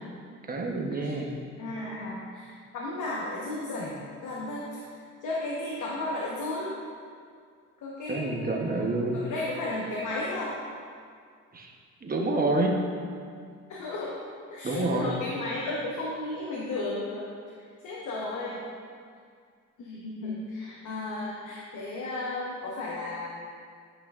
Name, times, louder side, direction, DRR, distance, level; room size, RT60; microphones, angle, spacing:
voice 1, 0.5-1.3 8.1-9.2 11.5-11.7 12.0-12.8 14.6-15.2, right 2 dB, 30° right, 1 dB, 1.0 m, -28 dB
voice 2, 1.6-4.0 4.2-4.7 5.2-6.7 7.8-8.8 9.1-10.5 13.7-14.1 14.5-17.3 17.8-18.6 19.8-23.6, left 2 dB, 75° left, -5 dB, 1.1 m, -34 dB
10.5 x 5.7 x 2.5 m, 2.1 s
cardioid pair, 90°, 30 cm